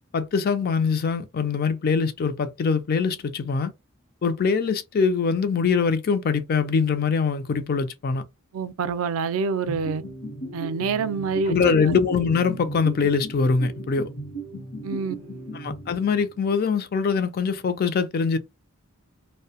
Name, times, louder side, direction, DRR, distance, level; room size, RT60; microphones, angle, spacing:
voice 1, 0.1-3.7 4.2-8.2 11.5-14.1 15.5-18.4, left 5 dB, 45° left, 0.4 m, -23 dB
voice 2, 8.5-10.0 10.5-11.9 14.8-15.2, right 5 dB, 75° right, 0.4 m, -27 dB
sound 1, 9.7-16.4, right 1 dB, 60° left, 0.8 m, -36 dB
2.6 x 2.1 x 2.8 m
head